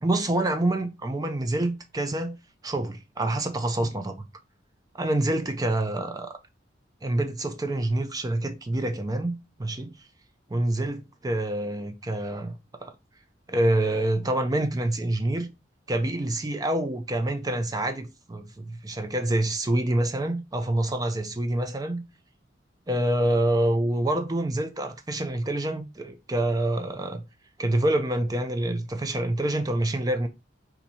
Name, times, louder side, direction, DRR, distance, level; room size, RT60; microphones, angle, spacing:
voice 1, 0.0-2.4 2.6-4.3 4.9-6.3 7.0-9.9 10.5-12.5 12.8-12.9 13.5-15.5 15.9-22.0 22.9-27.2 27.6-30.3, right 1 dB, 20° right, 0.4 m, -26 dB
4.1 x 2.7 x 4.2 m
head